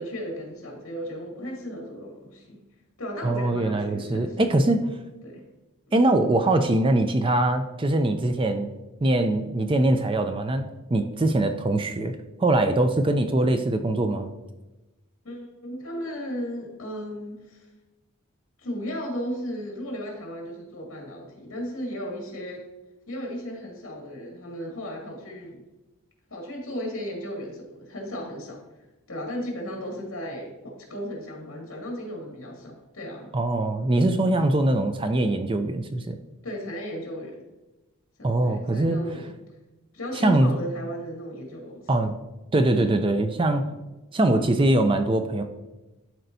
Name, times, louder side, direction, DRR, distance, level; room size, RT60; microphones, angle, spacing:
voice 1, 0.0-2.6 3.0-4.6 5.2-5.5 15.2-17.7 18.6-22.6 23.1-25.6 26.3-28.6 29.1-33.4 34.3-34.5 36.4-37.4 38.2-39.3 39.9-41.9, equal, 70° left, -1 dB, 2.3 m, -35 dB
voice 2, 3.2-4.8 5.9-8.7 9.0-10.7 10.9-14.3 33.3-36.2 38.2-39.0 40.1-40.5 41.9-42.1 42.5-43.6 44.1-45.4, right 2 dB, 25° right, 7 dB, 0.4 m, -22 dB
12.0 x 4.5 x 2.7 m, 1.1 s
head